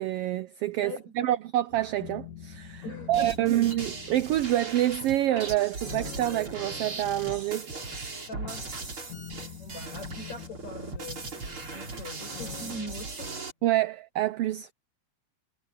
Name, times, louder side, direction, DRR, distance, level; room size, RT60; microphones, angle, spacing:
voice 1, 0.0-2.8 3.1-7.7 13.6-14.7, right 14 dB, 85° right, 1.3 m, -27 dB
voice 2, 0.8-1.4 2.8-3.6 8.3-8.8 9.6-11.3 11.7-13.5, left 1 dB, 65° left, 7.9 m, -41 dB
sound 1, 1.7-13.0, left 8 dB, 90° left, 4.5 m, -45 dB
sound 2, 3.1-13.5, right 3 dB, 45° right, 5.2 m, -39 dB
omnidirectional pair, 3.3 m